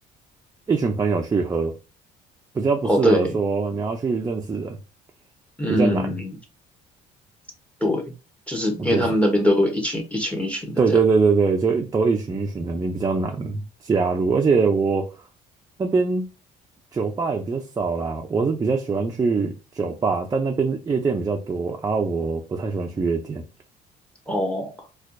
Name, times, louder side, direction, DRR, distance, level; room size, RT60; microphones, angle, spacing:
voice 1, 0.7-1.8 2.5-4.8 5.7-6.2 8.7-9.2 10.8-15.2 15.8-16.3 16.9-23.4, right 4 dB, 20° right, 0.5 m, -23 dB
voice 2, 2.8-3.3 5.6-6.3 7.8-8.0 8.5-10.8 24.3-24.7, equal, 5° left, 0.9 m, -22 dB
4.3 x 2.3 x 2.5 m
cardioid pair, 110°, 17 cm